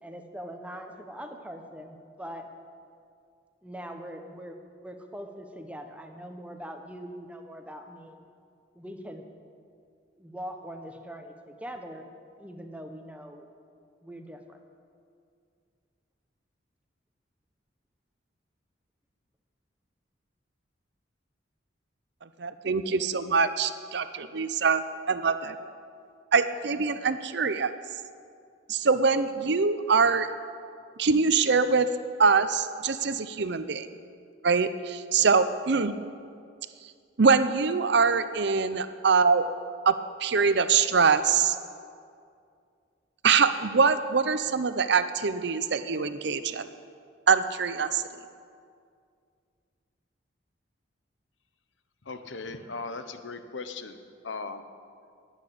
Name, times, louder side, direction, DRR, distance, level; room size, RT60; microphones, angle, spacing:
voice 1, 0.0-2.5 3.6-4.5 4.8-8.2 8.7-9.3 10.2-12.1 12.4-13.5 14.0-14.6, equal, 5° right, 4 dB, 1.1 m, -42 dB
voice 2, 22.2-24.8 25.1-25.6 26.3-27.7 28.7-30.3 31.0-31.9 32.2-33.9 34.4-35.9 37.2-39.5 39.9-41.6 43.2-46.7 47.3-48.0, right 5 dB, 65° right, 12 dB, 0.7 m, -24 dB
voice 3, 52.0-54.0 54.2-54.6, left 4 dB, 80° left, 9 dB, 1.0 m, -38 dB
11.5 x 9.1 x 9.9 m, 2.3 s
head